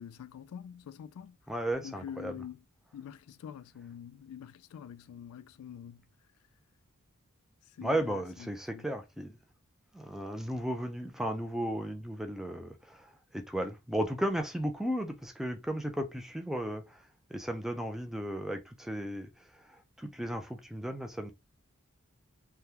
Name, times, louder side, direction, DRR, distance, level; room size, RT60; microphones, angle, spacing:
voice 1, 0.0-1.3 1.8-2.6 2.9-6.0 7.8-8.2 8.7-8.9, left 9 dB, 80° left, 0.3 m, -45 dB
voice 2, 1.5-2.4 7.8-9.4 9.9-17.0 17.3-21.3, right 1 dB, ahead, 0.4 m, -35 dB
3.4 x 2.3 x 2.8 m
head